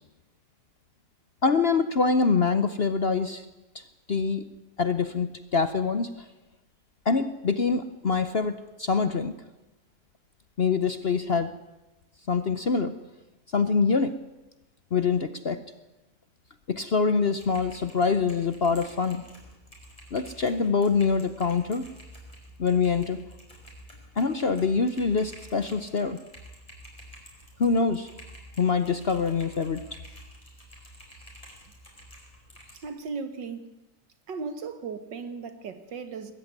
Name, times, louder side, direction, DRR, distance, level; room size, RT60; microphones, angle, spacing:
voice 1, 1.4-3.4 3.7-3.8 4.1-4.4 4.8-6.3 7.0-9.3 10.6-11.5 12.3-12.9 13.5-14.1 14.9-15.6 16.7-19.2 20.1-21.9 22.6-23.2 24.2-26.2 27.6-28.1 28.6-30.0, left 5 dB, 45° left, 0.8 m, -25 dB
Typing, 17.3-32.9, equal, 20° left, 5.7 m, -49 dB
voice 2, 32.7-33.8 34.3-36.3, right 5 dB, 80° right, 2.3 m, -36 dB
20.5 x 14.5 x 9.6 m
omnidirectional pair, 1.9 m